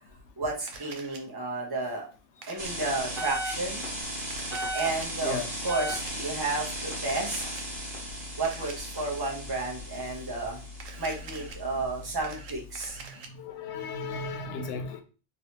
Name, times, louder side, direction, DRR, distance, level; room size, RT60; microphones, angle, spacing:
voice 1, 0.4-2.0 2.5-3.8 4.7-7.6 8.4-10.6 11.0-13.0, right 3 dB, 20° right, 0.9 m, -32 dB
Camera, 0.7-1.2 2.4-2.7 4.2-5.1 5.8-6.1 7.1-7.7 8.4-8.8 10.7-11.6 12.0-13.3, right 5 dB, 80° right, 0.9 m, -45 dB
sound 1, 2.6-13.0, equal, 45° right, 1.1 m, -36 dB
voice 2, 13.3-15.0, left 4 dB, 70° left, 0.9 m, -35 dB
3.1 x 2.9 x 2.8 m
omnidirectional pair, 1.3 m